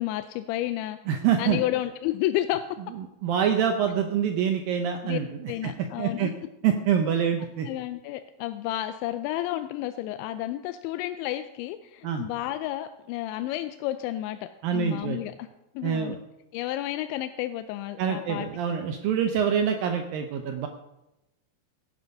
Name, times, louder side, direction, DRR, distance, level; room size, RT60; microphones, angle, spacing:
voice 1, 0.0-1.0 1.4-2.6 5.0-5.2 5.5-6.3 7.6-15.5 15.8-16.2 16.5-18.5, left 14 dB, 90° left, 10 dB, 2.9 m, -31 dB
voice 2, 1.1-1.6 3.2-5.7 6.0-6.3 6.6-7.7 12.0-12.2 14.6-15.2 15.8-16.2 18.0-20.7, right 8 dB, 85° right, 5 dB, 2.0 m, -25 dB
16.5 x 8.7 x 5.3 m, 0.93 s
omnidirectional pair, 5.1 m